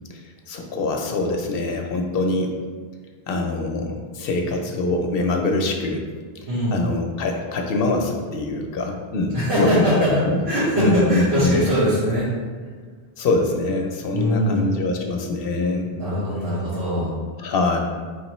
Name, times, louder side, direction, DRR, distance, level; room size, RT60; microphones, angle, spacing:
voice 1, 0.1-2.6 3.3-6.0 6.7-10.4 10.8-11.6 13.2-15.9 17.4-17.8, left 2 dB, 70° left, 3 dB, 0.7 m, -24 dB
voice 2, 9.3-12.3 14.1-14.6 15.9-17.1, equal, 75° right, -13 dB, 1.5 m, -21 dB
4.8 x 3.1 x 3.0 m, 1.6 s
omnidirectional pair, 1.0 m